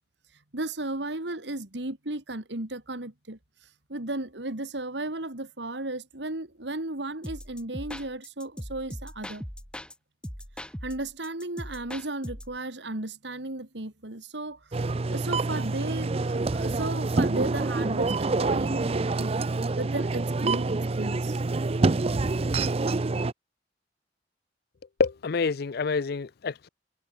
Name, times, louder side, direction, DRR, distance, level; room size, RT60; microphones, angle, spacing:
voice 1, 0.5-9.4 10.8-19.5 19.8-21.4, right 2 dB, 75° right, 2.8 m, -35 dB
sound 1, 7.2-9.9 10.2-12.6, equal, 5° left, 4.1 m, -40 dB
sound 2, 14.7-23.3, right 3 dB, 35° right, 0.5 m, -27 dB
voice 2, 25.0-26.7, left 4 dB, 60° left, 0.5 m, -27 dB
head